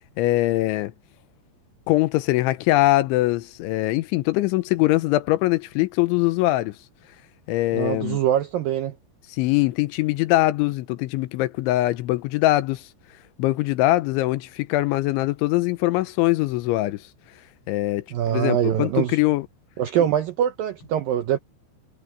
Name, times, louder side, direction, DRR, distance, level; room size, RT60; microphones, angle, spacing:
voice 1, 0.2-0.9 1.9-6.8 7.5-8.2 9.4-12.8 13.4-17.0 17.7-19.5, left 17 dB, 85° left, 3.3 m, -22 dB
voice 2, 7.7-9.0 18.1-19.2 19.8-21.4, right 10 dB, 80° right, 2.0 m, -23 dB
omnidirectional pair, 5.3 m